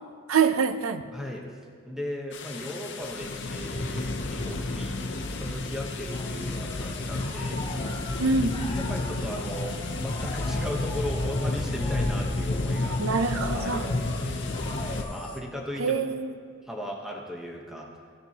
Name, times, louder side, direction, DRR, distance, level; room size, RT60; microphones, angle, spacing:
voice 1, 0.3-1.0 8.2-8.6 13.0-13.9 15.8-16.3, right 5 dB, 85° right, 10 dB, 0.5 m, -25 dB
voice 2, 1.1-1.6 1.8-7.7 8.8-13.1 13.5-16.0 16.6-17.9, equal, ahead, -1 dB, 0.9 m, -37 dB
sound 1, 2.3-15.0, left 2 dB, 60° left, 0.7 m, -31 dB
sound 2, 6.1-15.4, left 2 dB, 25° left, 0.8 m, -40 dB
15.0 x 6.7 x 2.8 m, 2.2 s
head